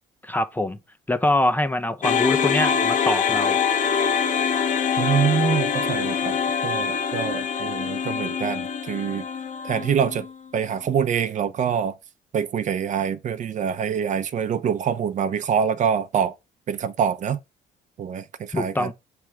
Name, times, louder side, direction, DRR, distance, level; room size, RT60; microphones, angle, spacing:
voice 1, 0.2-0.8 1.1-3.6 18.5-18.9, left 1 dB, 10° left, 0.5 m, -24 dB
sound 1, 2.0-10.3, left 7 dB, 50° left, 0.9 m, -24 dB
voice 2, 5.0-6.4 6.6-9.2 9.6-10.3 10.5-12.0 12.3-16.3 16.7-17.4 18.0-18.9, right 7 dB, 45° right, 0.7 m, -25 dB
7.3 x 3.4 x 4.5 m
cardioid pair, 110°, 17 cm